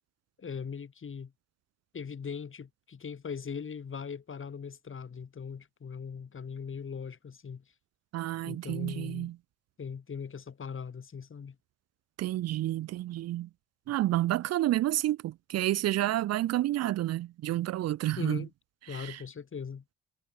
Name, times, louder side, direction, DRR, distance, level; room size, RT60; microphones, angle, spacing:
voice 1, 0.4-1.3 1.9-7.6 8.4-9.3 9.8-11.6 18.2-18.5 18.9-19.8, left 6 dB, 40° left, 4.9 m, -40 dB
voice 2, 8.1-9.3 12.2-13.5 13.9-18.4 18.9-19.2, right 14 dB, 55° right, 0.7 m, -30 dB
hypercardioid pair, 45°, 30 cm